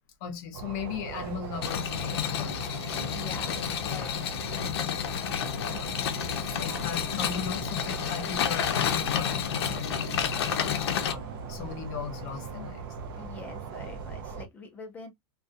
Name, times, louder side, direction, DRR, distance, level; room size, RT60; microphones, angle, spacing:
voice 1, 0.2-3.1 3.9-4.1 5.0-5.9 6.4-11.2 11.5-12.9, left 6 dB, 45° left, 0.8 m, -38 dB
sound 1, 0.5-14.5, right 6 dB, 60° right, 0.5 m, -41 dB
sound 2, 1.6-11.1, left 9 dB, 80° left, 0.6 m, -30 dB
voice 2, 3.0-4.7 13.2-15.1, left 4 dB, 10° left, 0.6 m, -45 dB
sound 3, 6.3-13.5, right 2 dB, 30° right, 0.8 m, -47 dB
2.3 x 2.3 x 2.5 m
supercardioid pair, 170°, 13 cm